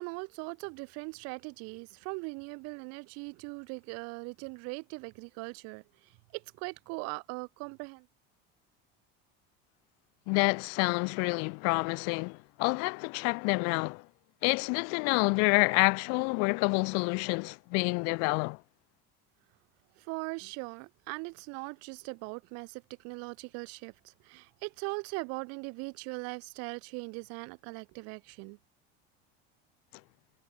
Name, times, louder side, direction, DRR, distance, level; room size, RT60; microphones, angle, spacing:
voice 1, 0.0-5.8 6.3-8.1 20.0-28.6, right 31 dB, 55° right, 4.1 m, -40 dB
voice 2, 10.3-14.0 14.4-18.6, left 35 dB, 60° left, 2.3 m, -28 dB
cardioid pair, 175°, 29 cm